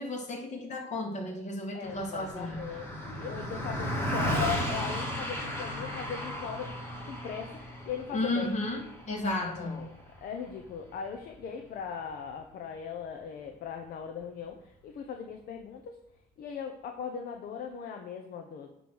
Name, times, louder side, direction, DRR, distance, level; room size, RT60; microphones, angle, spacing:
voice 1, 0.0-2.6 8.1-8.8 9.1-9.8, left 2 dB, 45° left, 1 dB, 1.9 m, -33 dB
voice 2, 1.7-6.7 7.1-7.5 7.9-8.5 9.4-9.9 10.2-16.0 16.4-18.7, left 7 dB, 60° left, 4 dB, 0.7 m, -39 dB
Car passing by, 1.8-11.5, equal, 15° left, 2.0 m, -35 dB
9.0 x 3.2 x 6.3 m, 0.80 s
cardioid pair, 110°, 17 cm